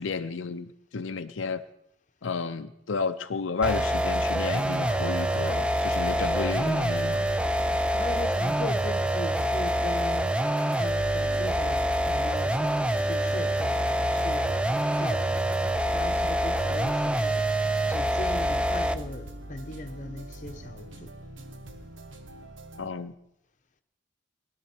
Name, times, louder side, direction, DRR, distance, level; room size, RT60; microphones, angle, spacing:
voice 1, 0.0-1.6 2.2-7.3 22.8-23.1, left 4 dB, 80° left, 0.6 m, -32 dB
sound 1, 3.6-19.1, right 1 dB, 5° right, 0.5 m, -26 dB
sound 2, 3.7-22.9, right 1 dB, 75° right, 1.3 m, -42 dB
voice 2, 7.9-10.4 10.8-12.6 12.9-14.6 15.0-15.7 15.9-17.4 17.9-21.1, left 2 dB, 40° left, 1.1 m, -39 dB
21.0 x 12.5 x 4.5 m
head